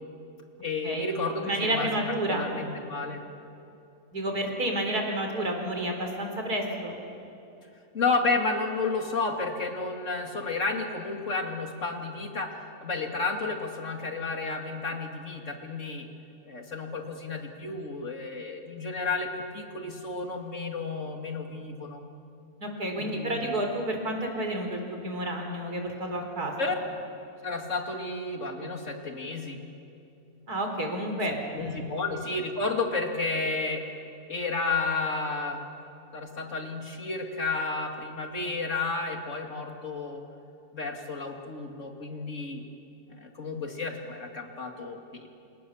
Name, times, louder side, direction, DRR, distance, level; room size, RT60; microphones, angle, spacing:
voice 1, 0.6-3.2 7.9-12.5 12.8-16.1 16.5-22.0 23.0-23.5 26.6-26.7 27.4-29.6 31.5-33.8 34.3-35.6 36.1-40.2 40.7-42.6 43.1-45.3, left 3 dB, 55° left, 3 dB, 2.9 m, -32 dB
voice 2, 1.4-2.5 4.1-6.9 22.6-26.7 30.5-31.8, right 1 dB, 85° right, 3 dB, 4.6 m, -30 dB
29.0 x 27.0 x 7.3 m, 2.8 s
omnidirectional pair, 1.6 m